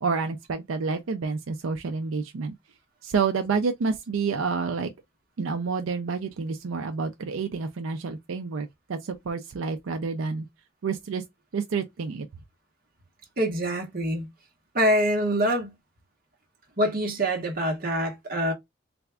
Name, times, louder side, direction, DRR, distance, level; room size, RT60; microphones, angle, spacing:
voice 1, 0.0-2.5 3.0-4.9 5.4-10.5 10.8-11.2 11.5-12.3, right 5 dB, 75° right, 0.4 m, -29 dB
voice 2, 13.4-14.3 14.7-15.7 16.8-18.5, equal, 45° right, 1.0 m, -25 dB
3.4 x 2.4 x 3.3 m
head